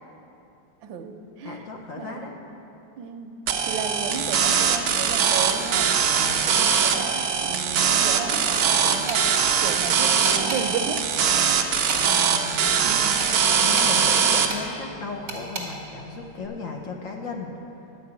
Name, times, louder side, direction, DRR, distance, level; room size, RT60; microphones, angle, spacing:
voice 1, 0.8-1.6 2.0-2.3 3.0-3.3 3.7-5.9 6.5-9.2 9.6-11.0 12.8-13.2, right 6 dB, 90° right, 6 dB, 1.5 m, -33 dB
voice 2, 1.4-2.3 6.1-6.4 12.1-12.6 13.5-17.5, left 4 dB, 60° left, 0 dB, 0.9 m, -36 dB
sound 1, 3.5-14.5, right 7 dB, 65° right, 1.0 m, -22 dB
sound 2, 8.3-8.7 9.1-9.2 10.2-10.6 11.3-12.3 13.2-14.0 14.5-14.6 15.3-15.7, right 3 dB, 50° right, 1.7 m, -33 dB
10.5 x 5.7 x 8.1 m, 2.9 s
omnidirectional pair, 2.0 m